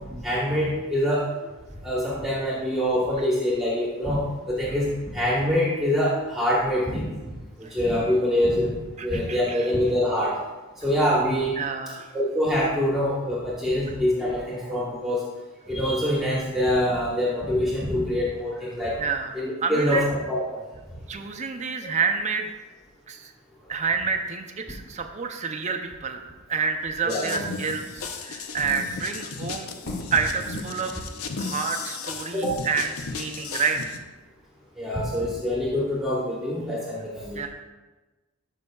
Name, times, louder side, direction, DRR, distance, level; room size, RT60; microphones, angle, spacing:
voice 1, 0.1-1.3 1.8-7.3 7.6-8.7 9.0-10.4 10.8-11.6 12.1-15.2 15.7-19.0 19.3-20.0 20.3-20.6 27.0-27.4 32.3-32.5 34.8-37.4, equal, ahead, -6 dB, 1.1 m, -25 dB
voice 2, 9.0-9.7 11.6-12.2 19.0-19.3 19.6-20.0 21.1-22.5 23.1-23.3 23.7-29.7 30.1-31.0 31.4-34.0 37.4-37.5, right 5 dB, 35° right, 4 dB, 0.5 m, -29 dB
sound 1, 27.1-34.0, left 4 dB, 70° left, 0.6 m, -35 dB
Fireworks, 29.8-32.7, left 1 dB, 90° left, 2.5 m, -46 dB
12.5 x 5.4 x 2.3 m, 1.2 s
head